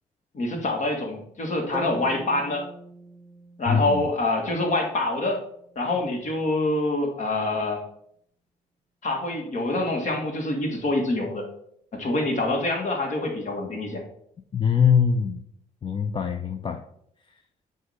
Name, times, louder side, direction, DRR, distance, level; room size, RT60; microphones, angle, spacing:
voice 1, 0.3-2.7 3.6-5.4 5.8-7.8 9.0-11.5 11.9-14.0, left 2 dB, 55° left, 2 dB, 1.7 m, -26 dB
sound 1, 1.7-5.8, right 1 dB, 10° right, 0.9 m, -40 dB
voice 2, 3.7-4.0 14.5-15.4 15.8-16.8, left 7 dB, 35° left, 6 dB, 0.5 m, -22 dB
7.8 x 2.8 x 4.9 m, 0.70 s
cardioid pair, 75°, 16 cm